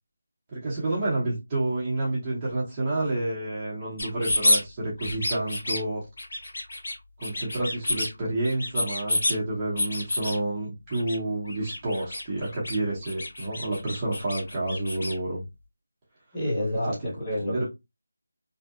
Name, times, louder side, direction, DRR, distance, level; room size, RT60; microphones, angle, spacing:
voice 1, 0.5-6.0 7.2-15.4 16.8-16.9 17.4-17.7, right 2 dB, 20° right, 0.8 m, -29 dB
sound 1, 4.0-4.6 5.0-5.8 6.2-6.9 7.2-8.1 8.4-9.4 9.8-10.4 10.9-11.2 11.4-12.8 13.0-15.1, left 1 dB, 50° left, 1.1 m, -28 dB
voice 2, 16.3-17.7, left 1 dB, 15° left, 1.1 m, -28 dB
2.7 x 2.1 x 2.3 m
figure-of-eight pair, 170°, 0 cm